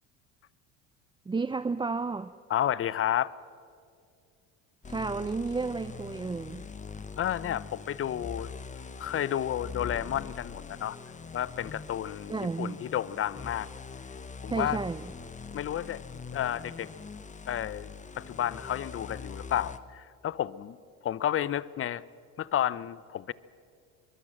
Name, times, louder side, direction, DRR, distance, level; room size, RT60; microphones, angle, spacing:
voice 1, 1.3-2.3 4.9-6.7 12.3-12.8 14.5-15.1, right 4 dB, 15° right, 12 dB, 0.6 m, -32 dB
voice 2, 2.5-3.3 7.2-8.5 9.0-11.0 11.3-13.7 14.4-14.8 15.5-16.0 16.3-16.9 17.5-17.9 18.2-20.8 21.0-22.0 22.4-23.3, left 11 dB, 35° left, 19 dB, 0.8 m, -31 dB
sound 1, 4.8-19.8, left 5 dB, 20° left, 1.2 m, -43 dB
23.5 x 21.5 x 7.5 m, 2.3 s
supercardioid pair, 90°, 36 cm